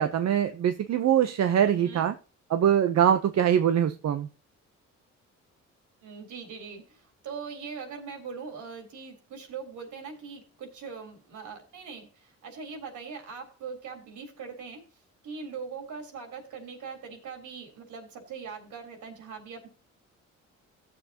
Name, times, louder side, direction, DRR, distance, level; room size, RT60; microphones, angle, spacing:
voice 1, 0.0-2.1 2.5-4.3, right 9 dB, 60° right, 0.9 m, -23 dB
voice 2, 6.0-14.8 15.2-19.7, right 5 dB, 75° right, 3.9 m, -41 dB
16.0 x 7.2 x 2.9 m
cardioid pair, 90°, 30 cm